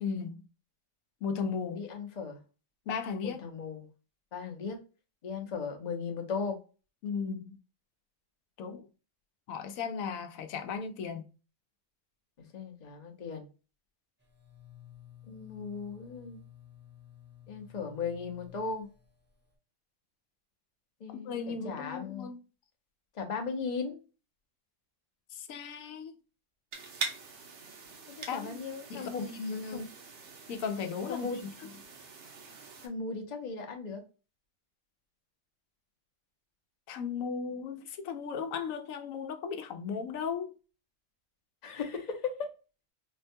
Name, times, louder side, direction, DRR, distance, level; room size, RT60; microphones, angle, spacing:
voice 1, 0.0-0.4 1.2-1.9 2.9-3.4 7.0-7.6 8.6-8.9 9.5-11.3 21.1-22.4 25.3-26.1 28.3-28.6 28.9-29.9 30.5-31.3 36.9-40.5, left 6 dB, 85° left, 1.0 m, -36 dB
voice 2, 1.7-2.4 3.2-3.9 4.3-4.8 5.2-6.6 12.5-13.5 15.2-16.4 17.5-18.9 21.0-22.3 23.1-24.0 28.1-29.2 29.7-29.8 31.1-31.4 32.8-34.0 41.6-42.5, left 5 dB, 40° left, 0.7 m, -37 dB
sound 1, 14.2-19.5, left 11 dB, 10° right, 0.6 m, -54 dB
sound 2, 26.7-32.9, right 4 dB, 65° right, 1.0 m, -43 dB
4.3 x 2.2 x 2.6 m
omnidirectional pair, 1.4 m